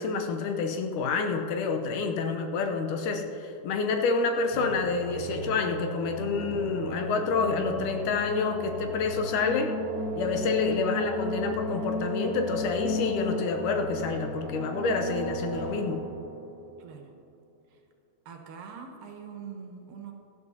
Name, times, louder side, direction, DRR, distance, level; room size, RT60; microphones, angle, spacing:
voice 1, 0.0-9.7 10.2-16.0, left 4 dB, 80° left, 4 dB, 2.2 m, -28 dB
sound 1, 4.5-16.5, equal, 20° right, 3.2 m, -35 dB
voice 2, 16.8-17.1 18.3-20.1, right 6 dB, 85° right, 2 dB, 2.9 m, -43 dB
17.5 x 12.0 x 2.8 m, 2.7 s
omnidirectional pair, 3.8 m